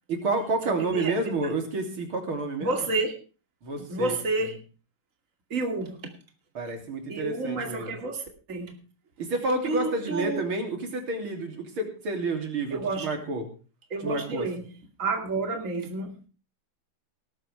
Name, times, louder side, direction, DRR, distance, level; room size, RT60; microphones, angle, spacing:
voice 1, 0.1-2.7 3.6-4.2 6.6-8.0 9.2-13.5 14.0-14.5, right 3 dB, 85° right, 3.9 m, -30 dB
voice 2, 0.7-1.4 2.6-3.2 3.9-4.6 5.5-6.1 7.1-8.7 9.6-10.4 12.7-13.1 13.9-14.6 15.0-16.3, right 3 dB, 40° right, 2.8 m, -30 dB
18.5 x 13.5 x 3.4 m
omnidirectional pair, 2.3 m